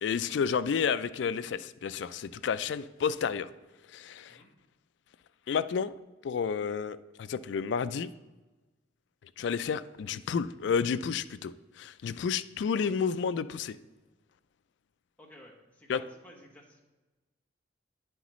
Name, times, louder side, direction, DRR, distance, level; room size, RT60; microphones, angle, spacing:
voice 1, 0.0-3.5 3.9-4.4 5.5-5.9 6.2-8.1 9.4-11.5 11.8-13.8 15.9-16.0, left 6 dB, 65° left, 13 dB, 0.3 m, -31 dB
voice 2, 15.2-16.8, equal, 10° left, -2 dB, 1.2 m, -54 dB
9.4 x 7.9 x 3.1 m, 1.2 s
head